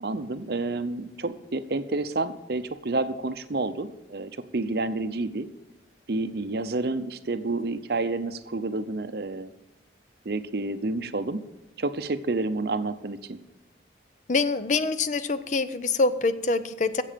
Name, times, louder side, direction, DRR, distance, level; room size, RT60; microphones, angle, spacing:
voice 1, 0.0-5.5 6.1-9.5 10.2-11.4 11.8-13.4, right 2 dB, 55° right, 11 dB, 0.6 m, -29 dB
voice 2, 14.3-17.0, left 3 dB, 40° left, 13 dB, 0.5 m, -25 dB
15.0 x 7.5 x 5.1 m, 1.0 s
head